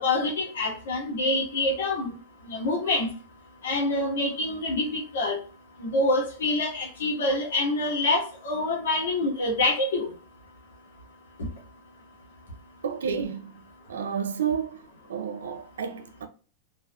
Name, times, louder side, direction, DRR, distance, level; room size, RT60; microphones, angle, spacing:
voice 1, 0.0-2.1 2.5-3.1 3.6-5.3 5.8-10.1, left 2 dB, 85° left, 1.5 m, -26 dB
voice 2, 12.8-13.5 13.9-14.8 15.1-16.3, right 7 dB, 85° right, 0.5 m, -30 dB
3.3 x 2.4 x 2.3 m
hypercardioid pair, 120°, 0 cm